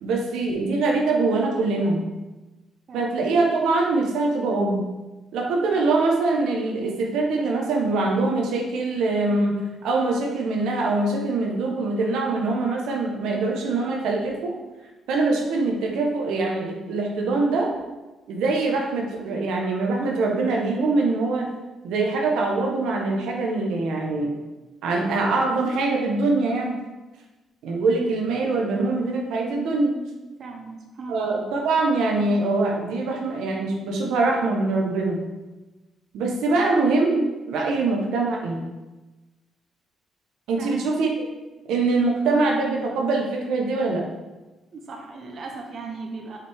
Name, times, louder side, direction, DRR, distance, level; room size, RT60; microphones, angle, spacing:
voice 1, 0.0-2.0 2.9-4.8 5.3-9.6 9.8-14.5 15.1-17.7 18.3-21.5 21.8-24.3 24.8-26.8 27.6-30.0 31.1-35.2 36.1-38.6 40.5-41.3 41.7-44.0, right 3 dB, 85° right, 0 dB, 1.0 m, -23 dB
voice 2, 2.9-3.3 30.4-31.4 40.6-40.9 44.7-46.4, right 3 dB, 55° right, 1 dB, 1.0 m, -37 dB
5.8 x 5.1 x 3.5 m, 1.1 s
cardioid pair, 90°, 0 cm